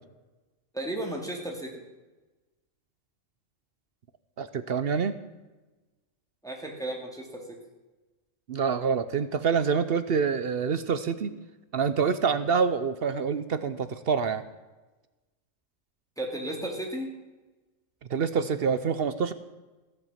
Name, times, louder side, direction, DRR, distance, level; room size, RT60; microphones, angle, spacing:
voice 1, 0.7-1.7 6.4-7.4 16.2-17.1, right 1 dB, 5° left, 0 dB, 2.3 m, -34 dB
voice 2, 4.4-5.2 8.5-11.4 11.7-14.4 18.1-19.3, right 6 dB, 55° right, 12 dB, 0.8 m, -26 dB
15.5 x 8.0 x 7.3 m, 1.2 s
omnidirectional pair, 1.4 m